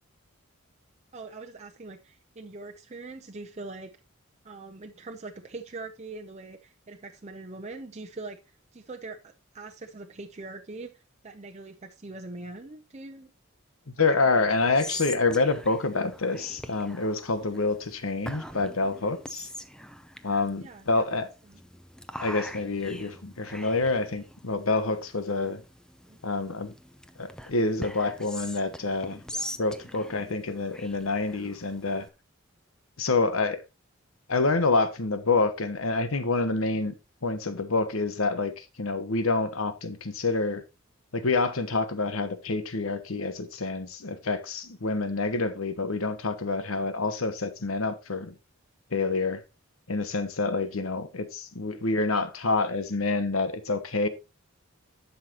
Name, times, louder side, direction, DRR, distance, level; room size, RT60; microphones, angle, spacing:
voice 1, 1.1-3.9 4.4-8.4 8.7-9.2 9.5-10.9 11.2-13.3 14.0-14.2 14.9-15.0 17.5-17.6 20.6-21.2 21.5-21.6 26.1-26.2 29.3-29.7 30.2-30.3 50.7-50.9, right 3 dB, 35° right, 0.7 m, -42 dB
voice 2, 14.0-19.5 20.2-21.3 22.2-25.6 26.2-26.7 27.2-29.2 29.6-32.1 33.0-33.6 34.3-36.9 37.2-40.6 41.1-48.3 48.9-49.4 49.9-54.1, left 3 dB, 80° left, 1.2 m, -27 dB
Whispering, 14.5-32.1, equal, 5° left, 0.6 m, -43 dB
11.5 x 5.7 x 2.9 m
head